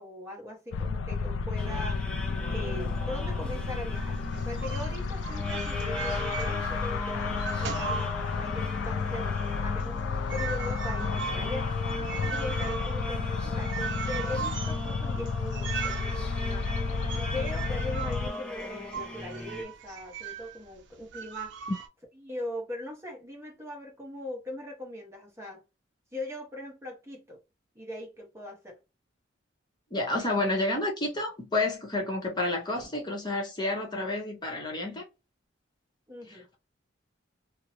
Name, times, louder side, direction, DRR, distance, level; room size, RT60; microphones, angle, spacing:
voice 1, 0.0-4.2 4.4-11.7 12.2-21.5 22.2-25.6 26.1-27.4 27.8-28.8 36.1-36.5, left 1 dB, 15° right, 0.8 m, -40 dB
sound 1, 0.7-18.3, left 5 dB, 75° left, 0.3 m, -32 dB
sound 2, 1.6-19.6, left 1 dB, 5° left, 0.4 m, -39 dB
sound 3, 4.0-7.0 7.2-8.7 9.1-20.6 21.1-21.9, right 7 dB, 65° right, 0.5 m, -39 dB
voice 2, 29.9-35.0 36.3-36.5, left 2 dB, 25° left, 0.8 m, -30 dB
2.5 x 2.0 x 2.9 m
head